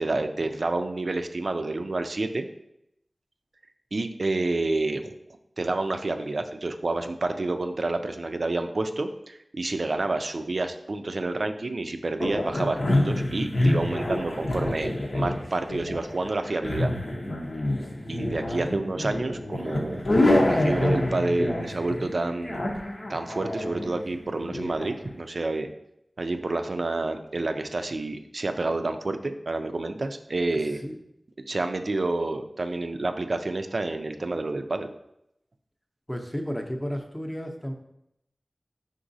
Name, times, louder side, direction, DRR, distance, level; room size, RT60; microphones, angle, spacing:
voice 1, 0.0-2.5 3.9-5.1 5.6-16.9 18.1-20.0 20.4-22.6 23.1-25.7 26.2-30.8 31.5-34.9, right 2 dB, 65° right, 7 dB, 0.3 m, -29 dB
sound 1, 12.2-24.9, left 1 dB, 75° left, 0.7 m, -27 dB
voice 2, 13.9-14.5 18.5-18.7 30.5-31.0 36.1-37.7, equal, 10° left, 3 dB, 0.6 m, -34 dB
4.8 x 3.7 x 2.6 m, 0.79 s
wide cardioid pair, 45°, 0 cm